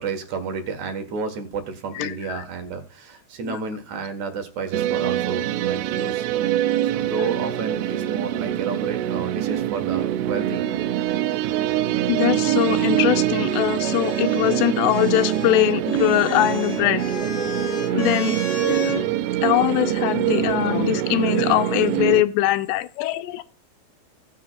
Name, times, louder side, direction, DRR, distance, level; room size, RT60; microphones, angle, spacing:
voice 1, 0.0-6.2 6.9-10.7, right 5 dB, 55° right, 7 dB, 2.3 m, -31 dB
voice 2, 2.0-2.4 3.4-3.6 7.2-7.3 12.1-17.0 17.9-19.1 19.4-23.4, left 15 dB, 85° left, 11 dB, 2.9 m, -22 dB
sound 1, 4.7-22.2, right 12 dB, 85° right, 2.7 m, -24 dB
sound 2, 12.4-19.0 20.1-20.8, equal, 35° left, 2.5 m, -34 dB
17.5 x 7.5 x 2.4 m, 0.38 s
omnidirectional pair, 5.0 m